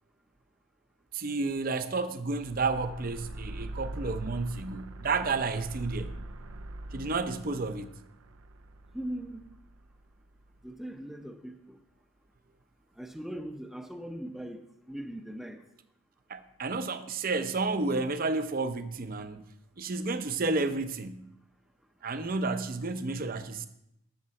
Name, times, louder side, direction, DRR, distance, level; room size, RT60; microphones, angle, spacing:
voice 1, 1.1-6.2 6.9-7.9 16.3-19.4 19.8-21.3 22.0-23.7, right 3 dB, 45° right, 0.6 m, -31 dB
sound 1, 2.4-10.7, right 1 dB, 90° right, 0.6 m, -43 dB
voice 2, 8.9-9.4 10.6-11.8 13.0-15.6, right 1 dB, ahead, 0.6 m, -40 dB
12.5 x 6.7 x 4.2 m
head